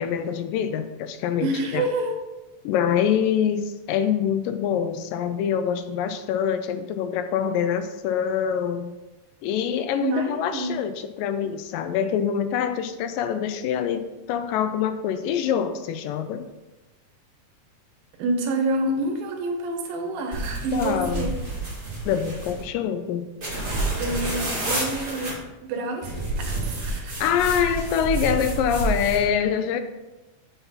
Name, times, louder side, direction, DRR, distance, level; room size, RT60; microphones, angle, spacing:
voice 1, 0.0-1.8 2.7-9.0 9.4-16.5 20.7-21.3 22.1-23.3 27.2-29.8, left 8 dB, 80° left, 9 dB, 2.1 m, -25 dB
voice 2, 1.4-2.2 10.0-10.7 18.2-21.3 24.0-25.3 25.6-26.1 26.4-27.2, right 2 dB, 80° right, 4 dB, 2.8 m, -27 dB
sound 1, 20.3-22.6 23.4-25.3 26.0-29.2, right 2 dB, 25° right, 1.1 m, -29 dB
7.9 x 5.7 x 4.0 m, 1.1 s
omnidirectional pair, 4.1 m